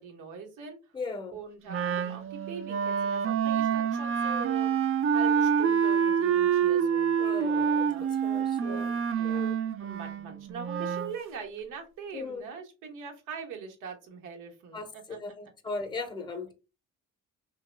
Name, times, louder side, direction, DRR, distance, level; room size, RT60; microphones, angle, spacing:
voice 1, 0.0-0.8 1.3-8.1 8.6-9.5 9.8-15.2, right 5 dB, 85° right, 1.0 m, -42 dB
voice 2, 0.9-1.4 7.2-8.8 9.2-9.6 12.1-12.4 14.7-14.9 15.2-16.5, left 3 dB, 15° left, 0.6 m, -38 dB
Wind instrument woodwind instrument, 1.7-11.2, right 7 dB, 45° right, 0.4 m, -27 dB
2.9 x 2.2 x 3.2 m
cardioid pair, 90°, 30 cm